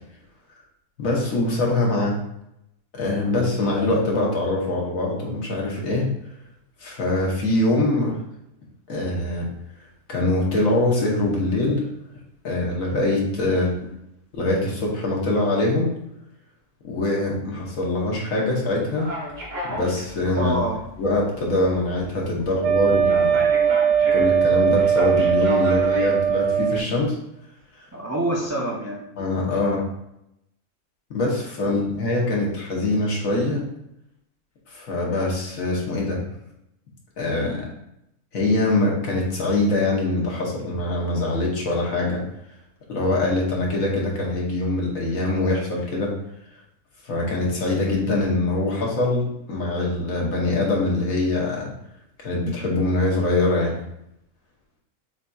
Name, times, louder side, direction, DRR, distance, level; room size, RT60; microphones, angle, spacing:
voice 1, 1.0-2.2 3.0-6.1 6.8-8.1 8.9-9.5 10.1-11.9 12.4-13.7 14.3-15.9 16.8-19.1 19.6-20.6 21.0-23.4 24.1-27.1 29.2-29.9 31.1-33.7 34.7-36.2 37.2-37.7 38.3-42.2 42.9-46.1 47.0-51.7 52.2-53.8, left 2 dB, 80° left, -2 dB, 1.6 m, -23 dB
sound 1, 19.0-26.8, equal, 50° right, 1.6 m, -35 dB
voice 2, 20.4-20.8 27.9-29.0 29.4-29.8 31.6-31.8, right 1 dB, 20° right, -4 dB, 0.4 m, -27 dB
Wind instrument woodwind instrument, 22.6-26.9, right 7 dB, 65° right, 0.8 m, -20 dB
7.2 x 2.8 x 2.3 m, 0.81 s
omnidirectional pair, 1.4 m